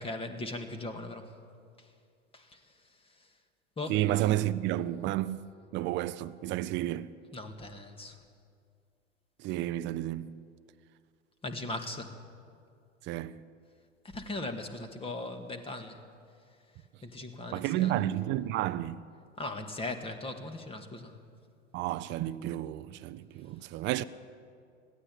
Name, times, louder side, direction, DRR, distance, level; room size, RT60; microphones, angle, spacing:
voice 1, 0.0-1.3 2.3-2.6 3.8-4.0 7.3-8.2 11.4-12.1 14.0-16.0 17.0-17.9 19.4-21.1, left 2 dB, 15° left, 2.0 m, -39 dB
voice 2, 3.9-5.4 5.7-7.1 9.4-10.4 13.0-13.4 17.5-19.0 21.7-24.0, right 14 dB, 30° right, 0.7 m, -31 dB
21.0 x 15.5 x 8.5 m
figure-of-eight pair, 95°, 36 cm